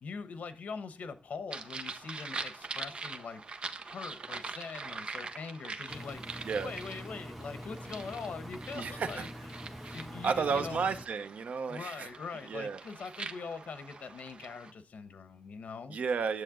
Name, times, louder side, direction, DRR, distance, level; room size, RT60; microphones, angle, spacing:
voice 1, 0.0-3.4 3.8-6.2 6.6-9.3 9.9-10.9 11.7-16.0, left 5 dB, 85° left, 1.1 m, -42 dB
sound 1, 1.5-14.7, right 4 dB, 45° right, 0.8 m, -44 dB
Engine, 5.9-11.1, equal, 5° left, 0.6 m, -45 dB
voice 2, 8.7-9.3 9.8-10.0 10.2-12.1 12.5-12.8 15.9-16.4, right 5 dB, 80° right, 0.9 m, -32 dB
9.9 x 7.7 x 3.8 m
wide cardioid pair, 150°, 3 cm